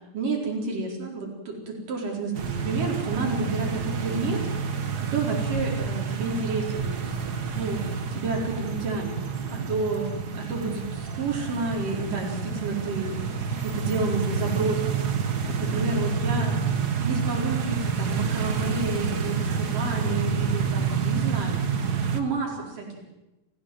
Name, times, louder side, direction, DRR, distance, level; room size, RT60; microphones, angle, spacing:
voice 1, 0.1-7.8 8.1-9.2 9.5-13.3 13.6-15.0 15.5-16.6 17.0-21.8 22.1-23.0, right 3 dB, 85° right, 0 dB, 6.0 m, -30 dB
sound 1, 2.3-22.2, right 5 dB, 45° right, 1.4 m, -28 dB
28.5 x 16.5 x 7.9 m, 0.99 s
omnidirectional pair, 3.7 m